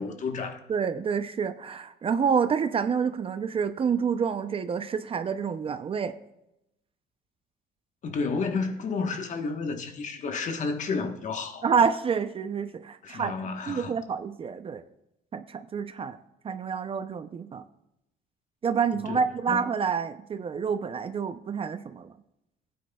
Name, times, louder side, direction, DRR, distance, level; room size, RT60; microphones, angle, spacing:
voice 1, 0.0-0.6 8.0-11.6 13.0-14.0 19.1-19.6, left 4 dB, 45° left, 1.2 m, -31 dB
voice 2, 0.7-6.2 11.6-13.3 13.7-14.8 15.3-16.2 16.4-17.6 18.6-22.1, right 6 dB, 35° right, 0.5 m, -28 dB
16.5 x 9.3 x 2.3 m
cardioid pair, 110°, 17 cm